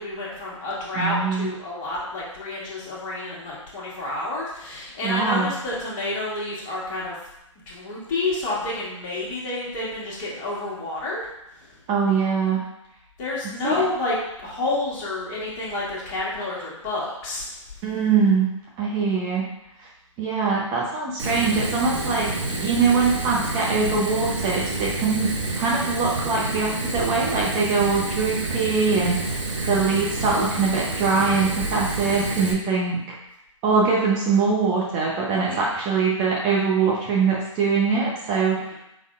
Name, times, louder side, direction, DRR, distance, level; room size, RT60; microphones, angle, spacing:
voice 1, 0.0-7.2 7.7-11.2 13.2-14.2 14.4-17.5 35.5-35.6 38.5-38.7, left 2 dB, 30° left, -6 dB, 1.5 m, -29 dB
voice 2, 1.0-1.5 5.0-5.5 11.9-12.6 13.6-13.7 17.8-18.5 18.8-19.4 19.8-19.9 20.2-22.3 22.6-29.2 29.7-33.0 33.6-38.6, right 4 dB, 25° right, -4 dB, 0.8 m, -22 dB
Fire, 21.2-32.5, right 3 dB, 65° right, 0.9 m, -28 dB
5.1 x 4.0 x 2.5 m, 0.85 s
figure-of-eight pair, 130°, 17 cm